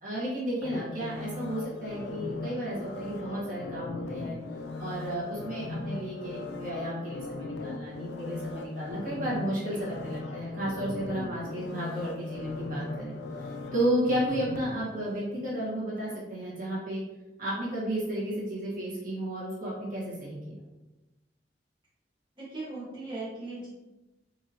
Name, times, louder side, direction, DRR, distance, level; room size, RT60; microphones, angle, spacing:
voice 1, 0.0-4.4 4.8-17.0 17.4-20.5, right 1 dB, 50° right, -6 dB, 1.2 m, -33 dB
sound 1, 0.6-15.7 16.1-16.2, left 3 dB, 70° left, 0.4 m, -39 dB
voice 2, 22.4-23.7, right 2 dB, 30° right, -9 dB, 1.1 m, -38 dB
4.0 x 2.8 x 2.7 m, 1.0 s
head